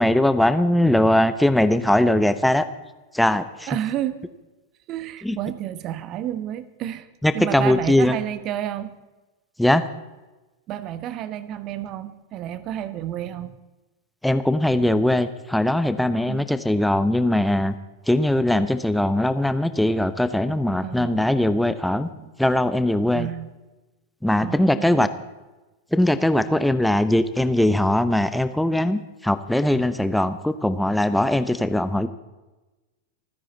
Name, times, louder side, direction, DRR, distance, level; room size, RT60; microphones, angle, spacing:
voice 1, 0.0-2.6 3.1-3.7 5.2-5.4 7.2-8.1 9.6-9.8 14.2-17.7 18.1-22.1 22.4-23.3 24.2-25.1 25.9-32.1, left 1 dB, 5° left, 12 dB, 0.9 m, -20 dB
voice 2, 3.7-4.2 4.9-7.1 7.3-8.9 10.7-13.6 16.3-16.5 20.8-21.1 22.1-22.3 23.1-23.5 24.4-25.3, right 11 dB, 35° right, 14 dB, 1.0 m, -30 dB
26.0 x 10.5 x 4.1 m, 1.1 s
figure-of-eight pair, 90°, 0 cm